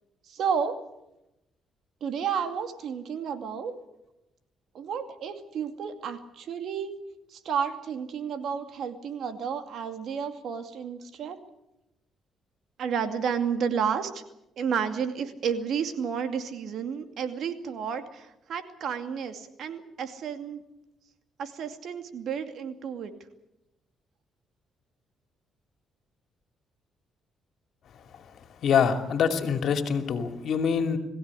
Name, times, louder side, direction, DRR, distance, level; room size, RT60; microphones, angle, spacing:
voice 1, 0.3-0.8 2.0-3.7 4.7-6.9 7.3-11.4 12.8-14.2 14.6-20.6 21.4-23.1, right 7 dB, 70° right, 8 dB, 2.4 m, -31 dB
voice 2, 28.6-31.0, left 7 dB, 65° left, 7 dB, 2.7 m, -25 dB
21.5 x 16.0 x 9.9 m, 0.90 s
cardioid pair, 90°, 0 cm